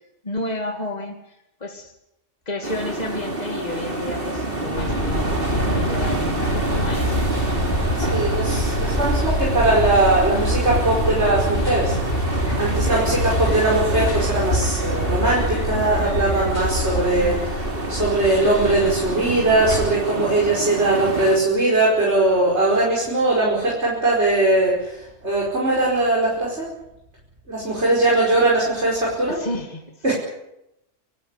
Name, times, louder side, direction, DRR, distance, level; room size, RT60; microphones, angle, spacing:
voice 1, 0.2-1.9 2.5-7.2 7.5-7.8 20.1-20.3 29.3-29.8, left 1 dB, 35° left, 3 dB, 2.9 m, -32 dB
sound 1, 2.6-21.4, right 2 dB, 50° right, 3.5 m, -28 dB
sound 2, 4.7-19.9, equal, 50° left, 7.0 m, -25 dB
voice 2, 8.1-12.0 12.5-26.7 27.5-29.4 30.0-30.1, right 2 dB, 65° right, -4 dB, 5.7 m, -20 dB
25.5 x 14.5 x 9.9 m, 0.86 s
omnidirectional pair, 1.2 m